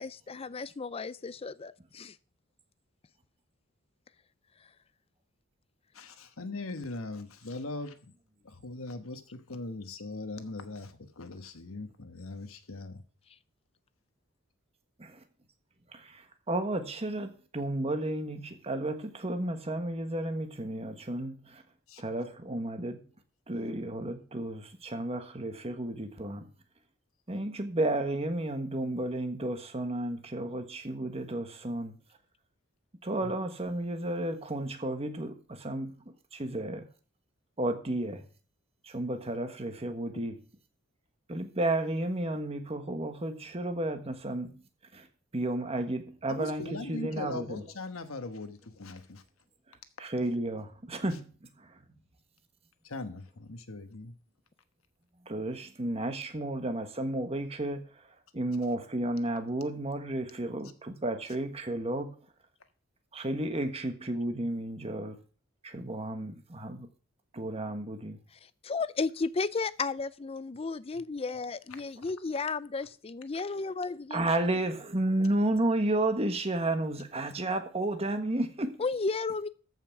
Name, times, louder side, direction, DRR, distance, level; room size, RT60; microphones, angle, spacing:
voice 1, 0.0-2.2 68.6-74.3 78.8-79.5, left 4 dB, 30° left, 0.4 m, -33 dB
voice 2, 5.9-8.0 8.4-13.0 21.9-22.0 33.2-33.3 46.3-49.2 52.8-54.2 71.7-72.1, left 2 dB, 85° left, 1.3 m, -40 dB
voice 3, 15.9-21.6 22.0-23.0 23.5-26.5 27.3-32.0 33.0-35.9 36.3-36.9 37.6-38.2 38.8-40.4 41.3-44.6 44.9-45.1 45.3-47.6 50.0-51.3 51.6-51.7 55.3-57.8 58.3-62.2 63.1-65.2 65.6-66.9 67.3-68.2 74.1-78.8, right 1 dB, 30° right, 1.4 m, -32 dB
13.5 x 5.7 x 5.9 m
head